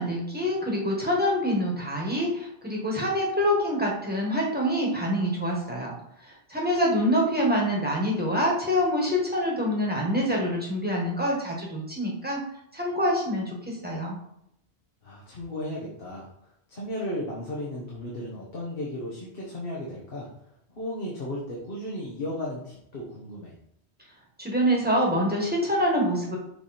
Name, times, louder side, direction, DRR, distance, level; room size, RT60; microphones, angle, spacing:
voice 1, 0.0-5.9 6.2-12.4 12.7-14.2 24.4-26.4, equal, 10° right, -3 dB, 1.5 m, -26 dB
voice 2, 15.0-16.3 16.7-20.3 20.7-23.5, left 1 dB, 55° left, -4 dB, 1.4 m, -35 dB
6.6 x 3.3 x 4.3 m, 0.76 s
omnidirectional pair, 1.1 m